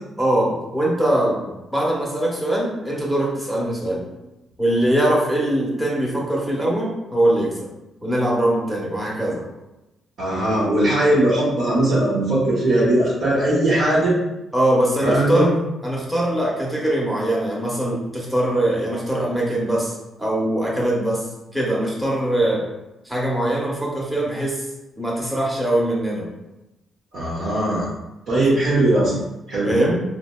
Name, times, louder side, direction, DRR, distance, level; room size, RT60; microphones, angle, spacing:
voice 1, 0.2-4.1 4.6-7.7 8.0-9.5 14.5-15.5 15.8-19.9 20.2-21.2 21.5-22.6 23.0-24.7 25.0-26.3 29.6-30.0, right 1 dB, 5° right, -5 dB, 0.8 m, -22 dB
voice 2, 10.2-14.2 15.0-15.5 27.1-27.9 28.3-29.2 29.5-29.7, right 1 dB, 80° right, -9 dB, 0.8 m, -19 dB
3.9 x 2.1 x 2.2 m, 0.97 s
cardioid pair, 100°, 0 cm